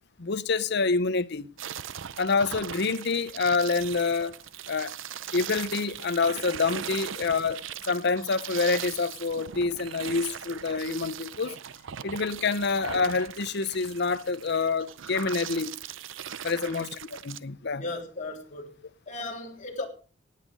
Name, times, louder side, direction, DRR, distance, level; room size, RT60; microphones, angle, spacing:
voice 1, 0.2-1.5 2.2-4.4 4.7-4.9 5.3-11.6 12.0-15.8 16.4-17.8, left 4 dB, 55° left, 0.8 m, -27 dB
sound 1, 1.6-17.4, right 9 dB, 65° right, 0.6 m, -39 dB
voice 2, 17.8-18.7 19.1-19.9, left 2 dB, 40° left, 3.3 m, -36 dB
18.0 x 8.3 x 5.3 m
head